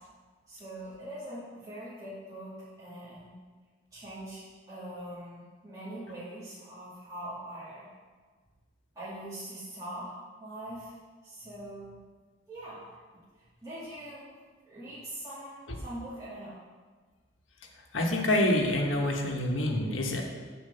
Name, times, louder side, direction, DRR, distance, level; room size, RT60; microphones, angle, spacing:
voice 1, 0.5-3.3 3.9-7.9 8.9-10.1 10.4-10.9 11.2-12.0 12.5-13.0 13.6-14.3 14.7-16.5, right 1 dB, 20° right, -12 dB, 2.3 m, -42 dB
voice 2, 17.9-20.2, left 1 dB, 85° left, 1 dB, 1.2 m, -27 dB
7.3 x 4.4 x 6.5 m, 1.5 s
head